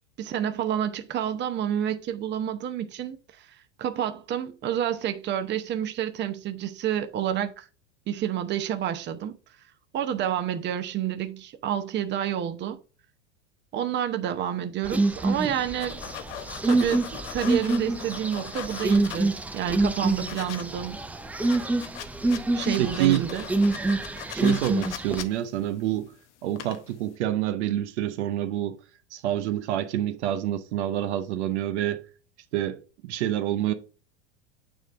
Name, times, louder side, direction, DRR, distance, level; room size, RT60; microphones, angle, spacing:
voice 1, 0.2-3.2 3.5-7.7 8.1-9.4 9.9-12.8 13.7-16.0 16.6-21.0 22.5-23.4, right 10 dB, 30° right, 0.8 m, -29 dB
sound 1, 14.8-25.2, right 2 dB, 5° right, 0.4 m, -27 dB
sound 2, 15.8-19.5 19.9-20.6 20.9-21.0 21.3-26.1 26.5-27.0, left 11 dB, 75° left, 0.9 m, -40 dB
voice 2, 22.8-23.3 24.3-26.1 26.4-28.8 29.1-32.1 32.5-33.7, right 12 dB, 70° right, 0.8 m, -27 dB
9.1 x 3.3 x 3.7 m
hypercardioid pair, 100°, 35 cm